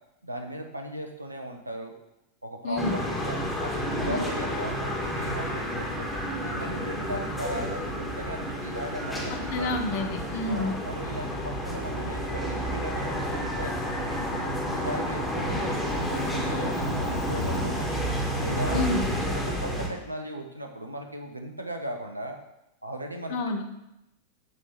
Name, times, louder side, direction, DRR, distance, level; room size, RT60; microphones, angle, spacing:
voice 1, 0.2-1.9 2.4-6.1 6.4-9.8 10.4-14.2 14.7-18.0 18.4-18.8 19.2-22.4 22.8-23.6, equal, 85° right, 4 dB, 1.0 m, -37 dB
voice 2, 2.6-2.9 4.1-4.2 9.3-10.7 18.7-19.0 23.3-23.6, left 2 dB, 50° left, 6 dB, 0.9 m, -29 dB
sound 1, 2.8-19.9, equal, 5° left, 1.6 m, -30 dB
8.1 x 3.6 x 5.6 m, 0.88 s
figure-of-eight pair, 90°, 0 cm